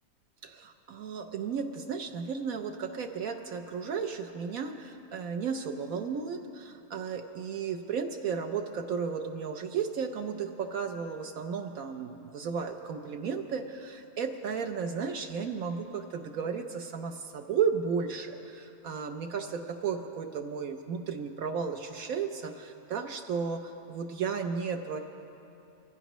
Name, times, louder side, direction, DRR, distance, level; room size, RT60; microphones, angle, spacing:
voice 1, 0.4-25.0, right 6 dB, 70° right, 5 dB, 1.1 m, -34 dB
24.0 x 15.5 x 3.1 m, 2.8 s
omnidirectional pair, 1.6 m